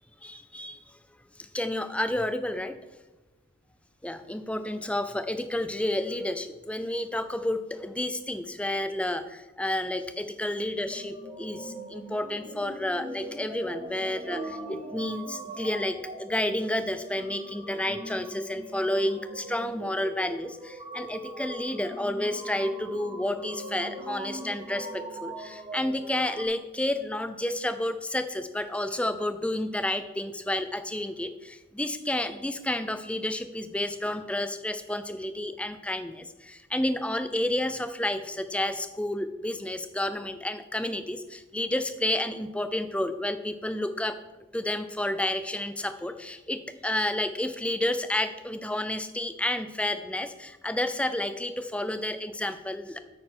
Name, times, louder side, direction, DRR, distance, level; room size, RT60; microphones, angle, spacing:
voice 1, 0.2-0.8 1.4-2.8 4.0-44.2 44.5-53.0, left 1 dB, 5° left, 10 dB, 0.5 m, -30 dB
sound 1, 10.8-26.4, right 1 dB, 25° right, 1.4 m, -41 dB
9.3 x 8.8 x 4.3 m, 1.1 s
head